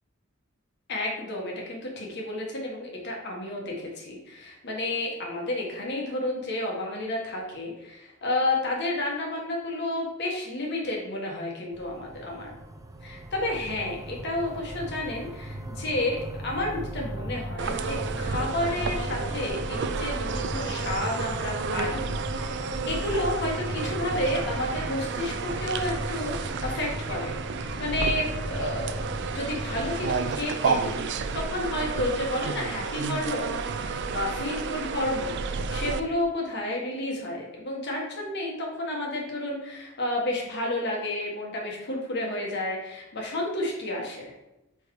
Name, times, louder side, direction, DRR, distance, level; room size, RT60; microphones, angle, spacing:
voice 1, 0.9-12.5 13.0-29.0 29.3-44.3, left 1 dB, 55° left, -1 dB, 1.6 m, -31 dB
sound 1, 11.7-30.4, right 1 dB, 15° right, 0.6 m, -37 dB
sound 2, 17.6-36.0, right 4 dB, 60° right, 0.4 m, -31 dB
5.2 x 4.6 x 4.8 m, 0.93 s
head